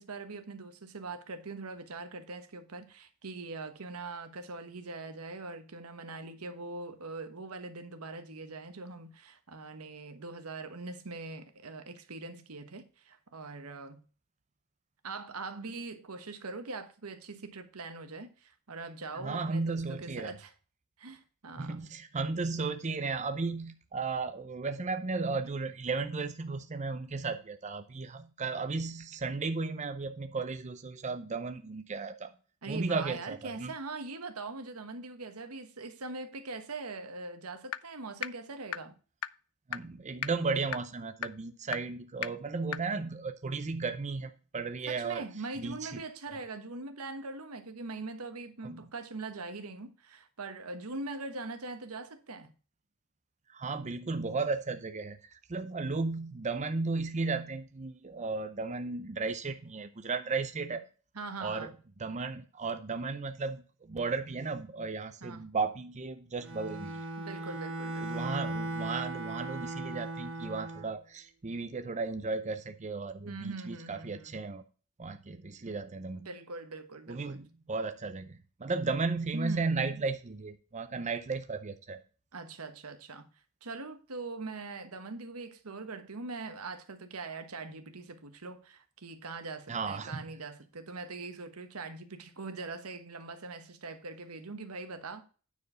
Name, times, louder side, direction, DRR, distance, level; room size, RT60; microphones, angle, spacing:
voice 1, 0.0-14.0 15.0-20.5 21.0-21.8 32.6-39.0 44.9-52.5 61.1-61.7 65.2-65.5 67.2-68.3 73.3-74.4 75.2-75.3 75.6-75.7 76.1-77.5 79.3-80.1 82.3-83.3 83.6-95.2, right 3 dB, 85° right, 1.2 m, -42 dB
voice 2, 19.1-20.4 21.6-32.3 32.7-33.7 39.7-45.2 45.6-46.0 48.6-48.9 53.5-60.8 61.4-61.7 62.0-67.0 68.0-74.6 75.0-76.3 77.1-82.0 89.7-90.4, right 4 dB, 35° right, 0.6 m, -35 dB
sound 1, 37.7-37.8 38.2-38.3 38.7-38.8 39.2-39.3 39.7-39.8 40.2-40.3 40.7-40.8 41.2-41.3 41.7-41.8 42.2-42.3 42.7-42.8, left 11 dB, 70° left, 0.4 m, -33 dB
Bowed string instrument, 66.4-70.9, right 2 dB, 65° right, 2.4 m, -37 dB
9.5 x 4.6 x 5.6 m
head